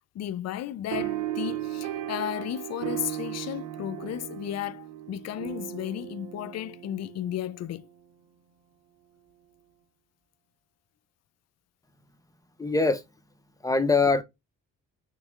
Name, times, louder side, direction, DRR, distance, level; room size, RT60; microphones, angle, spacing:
voice 1, 0.1-7.9, left 12 dB, 60° left, 0.4 m, -34 dB
sound 1, 0.9-7.8, right 12 dB, 85° right, 0.7 m, -36 dB
voice 2, 12.6-13.0 13.6-14.2, left 3 dB, 10° left, 0.7 m, -22 dB
3.5 x 3.2 x 3.4 m
cardioid pair, 90°, 30 cm